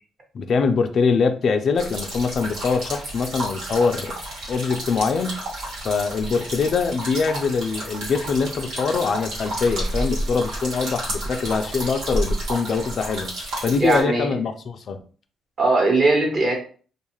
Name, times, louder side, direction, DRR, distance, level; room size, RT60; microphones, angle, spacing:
voice 1, 0.3-4.2 4.5-5.4 5.8-13.3 13.6-15.0, left 5 dB, 55° left, 7 dB, 0.3 m, -23 dB
sound 1, 1.7-14.0, right 1 dB, 85° right, 1.4 m, -31 dB
voice 2, 13.8-14.3 15.6-16.6, right 2 dB, 40° right, 1 dB, 1.0 m, -19 dB
2.4 x 2.3 x 3.0 m, 0.41 s
cardioid pair, 90°, 0 cm